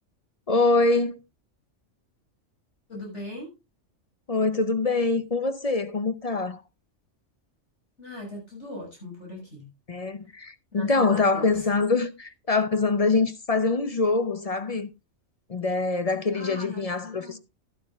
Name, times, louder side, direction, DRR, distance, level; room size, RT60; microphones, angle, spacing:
voice 1, 0.5-1.2 4.3-6.6 9.9-14.9 15.5-17.4, left 3 dB, 40° left, 0.6 m, -24 dB
voice 2, 2.9-3.5 8.0-9.7 10.7-11.5 16.3-17.4, left 1 dB, 65° left, 6.9 m, -39 dB
12.5 x 12.5 x 2.4 m
omnidirectional pair, 1.3 m